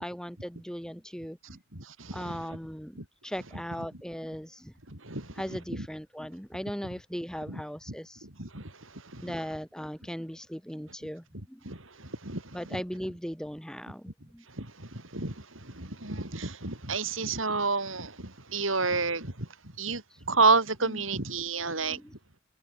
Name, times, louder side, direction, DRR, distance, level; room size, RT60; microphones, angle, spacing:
voice 1, 0.0-1.4 2.1-2.9 3.2-4.7 5.3-8.3 9.2-11.6 12.5-14.0 14.3-14.4 17.2-17.4 20.1-20.2 20.8-21.0 21.7-22.1, equal, 5° left, 6.7 m, -38 dB
voice 2, 1.4-2.5 3.0-3.1 4.9-5.9 7.5-7.6 8.2-9.3 11.6-12.8 14.5-19.5 19.8-20.0 20.3-22.0, right 4 dB, 90° right, 6.8 m, -30 dB
open air
head